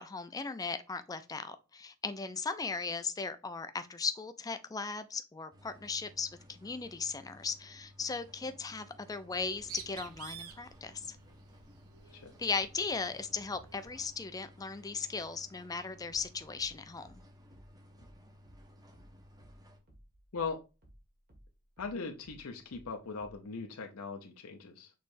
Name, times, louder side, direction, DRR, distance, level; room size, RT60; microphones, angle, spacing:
voice 1, 0.0-11.2 12.4-17.2, left 4 dB, 15° left, 0.4 m, -37 dB
sound 1, 5.5-19.8, equal, 20° right, 0.7 m, -58 dB
Bird, 9.3-14.2, right 8 dB, 80° right, 0.6 m, -52 dB
sound 2, 16.1-21.0 21.3-23.5, equal, 45° right, 1.7 m, -59 dB
voice 2, 21.8-24.9, left 4 dB, 80° left, 0.6 m, -39 dB
6.4 x 3.2 x 2.5 m
head